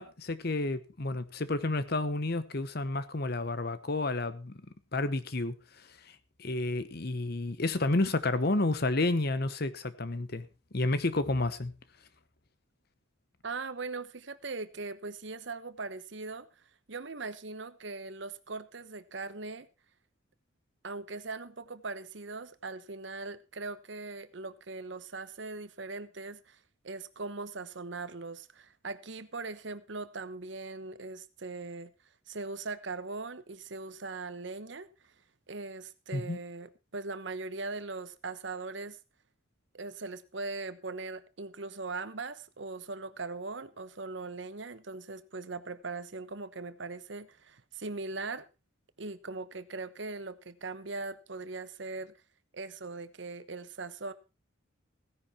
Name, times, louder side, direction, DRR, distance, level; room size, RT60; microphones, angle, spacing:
voice 1, 0.0-4.6 4.9-5.5 6.4-10.5 10.7-11.7 36.1-36.4, left 2 dB, 50° left, 1.0 m, -30 dB
voice 2, 13.4-16.5 16.9-19.7 20.8-31.9 32.3-35.1 35.5-39.0 39.7-48.4 49.0-52.1 52.5-54.1, right 3 dB, 65° right, 1.1 m, -40 dB
16.0 x 10.5 x 4.2 m
head